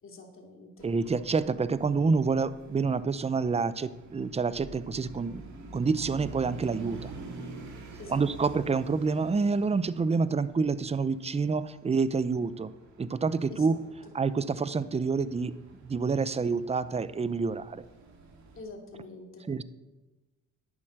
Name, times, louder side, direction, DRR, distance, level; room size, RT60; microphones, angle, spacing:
voice 1, 0.0-0.9 8.0-8.3 8.5-8.6 13.5-14.2 18.5-19.6, left 3 dB, 45° left, 1 dB, 3.1 m, -46 dB
voice 2, 0.8-5.4 5.7-7.1 8.1-12.7 13.0-13.8 14.1-15.5 15.8-17.8 19.5-19.6, right 4 dB, 20° right, 15 dB, 0.6 m, -28 dB
sound 1, 0.8-18.6, right 3 dB, 65° right, 2.6 m, -48 dB
11.0 x 8.7 x 6.5 m, 1.1 s
cardioid pair, 90°, 30 cm